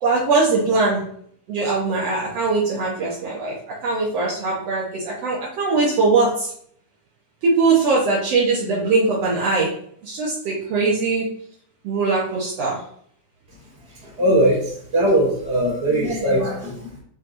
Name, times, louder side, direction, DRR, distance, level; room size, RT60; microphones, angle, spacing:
voice 1, 0.0-1.0 1.5-3.5 3.8-6.5 7.4-9.7 10.0-11.3 11.8-12.8, right 3 dB, 80° right, -4 dB, 1.4 m, -21 dB
voice 2, 14.2-14.6 14.9-17.0, right 1 dB, 20° right, -5 dB, 2.3 m, -19 dB
7.7 x 5.2 x 2.7 m, 0.65 s
omnidirectional pair, 4.5 m